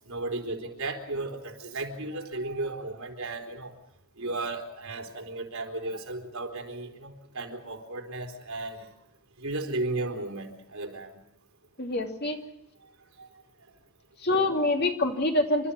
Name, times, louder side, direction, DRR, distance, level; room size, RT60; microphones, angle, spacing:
voice 1, 0.1-3.7 4.2-8.9 9.4-11.1 13.2-13.3, right 2 dB, 85° right, 3 dB, 3.7 m, -35 dB
voice 2, 11.8-12.4 14.2-15.7, left 2 dB, 50° left, 3 dB, 2.8 m, -25 dB
29.0 x 13.0 x 8.5 m, 0.84 s
head